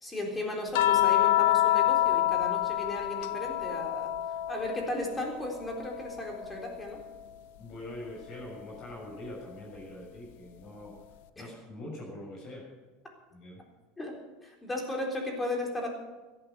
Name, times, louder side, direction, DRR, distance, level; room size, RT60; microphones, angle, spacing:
voice 1, 0.0-4.1 4.5-7.0 11.4-11.5 14.0-14.2 14.4-15.9, left 1 dB, 10° left, 1 dB, 3.8 m, -35 dB
sound 1, 0.7-5.2 5.6-7.2 8.7-8.9, left 13 dB, 75° left, 0.9 m, -27 dB
voice 2, 7.6-10.9 11.4-12.6 13.3-13.6, left 1 dB, 40° left, -2 dB, 6.6 m, -43 dB
16.0 x 12.0 x 6.8 m, 1.2 s
supercardioid pair, 150°, 0 cm